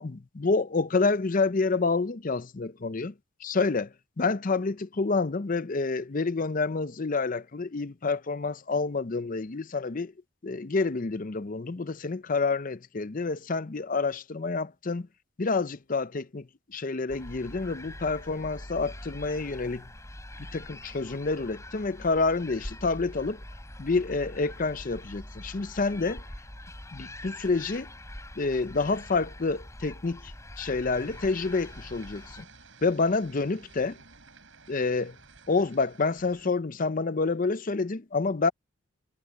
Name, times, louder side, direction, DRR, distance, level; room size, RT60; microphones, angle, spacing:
voice 1, 0.0-3.1 3.4-10.1 10.4-15.1 15.4-19.9 20.5-23.4 23.8-26.2 26.9-27.9 28.4-32.4 32.8-33.9 34.7-35.2 35.5-38.5, left 3 dB, 40° left, 0.6 m, -28 dB
sound 1, 17.1-32.5, left 1 dB, 15° left, 4.1 m, -44 dB
sound 2, 30.9-36.5, right 4 dB, 60° right, 7.0 m, -53 dB
head